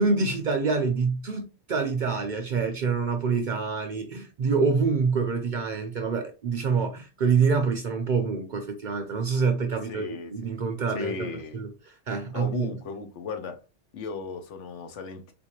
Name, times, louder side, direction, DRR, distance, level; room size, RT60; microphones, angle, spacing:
voice 1, 0.0-12.7, right 5 dB, 60° right, 0.5 m, -26 dB
voice 2, 9.9-10.6 10.9-11.6 12.3-13.6 13.9-15.3, left 5 dB, 80° left, 1.0 m, -36 dB
3.8 x 2.5 x 2.9 m
omnidirectional pair, 1.2 m